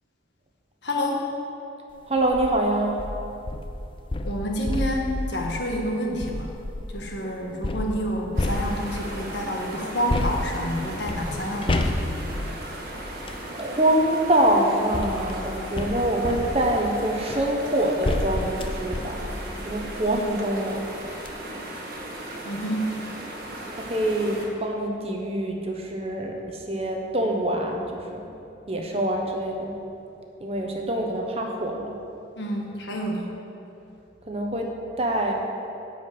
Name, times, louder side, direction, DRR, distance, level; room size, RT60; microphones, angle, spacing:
voice 1, 0.8-1.3 4.2-6.5 6.9-11.9 22.4-23.0 32.4-33.3, equal, 70° left, 0 dB, 1.5 m, -28 dB
voice 2, 2.1-2.9 13.5-19.3 19.6-20.8 23.8-28.3 28.7-29.7 30.4-31.9 34.3-34.7 35.0-35.3, right 1 dB, 30° right, 1 dB, 1.0 m, -25 dB
sound 1, 2.2-2.5 3.0-7.0 7.6-9.2 10.1-13.5 14.4-20.3 20.8-20.9 21.1-21.3, left 1 dB, 30° left, 0.5 m, -30 dB
sound 2, 8.4-24.5, right 1 dB, 55° right, 1.6 m, -37 dB
10.5 x 5.0 x 7.9 m, 2.7 s
head